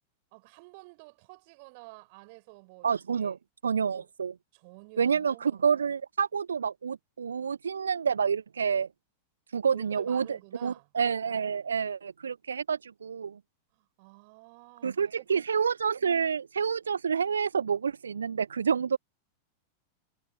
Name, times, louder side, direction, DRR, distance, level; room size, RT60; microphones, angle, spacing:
voice 1, 0.3-2.9 3.1-3.4 3.9-4.1 4.5-5.7 9.7-10.9 13.7-15.4, right 28 dB, 45° right, 5.6 m, -50 dB
voice 2, 2.8-3.4 3.6-4.3 5.0-8.9 9.5-13.4 14.8-19.0, right 6 dB, 70° right, 0.5 m, -28 dB
figure-of-eight pair, 90°, 0 cm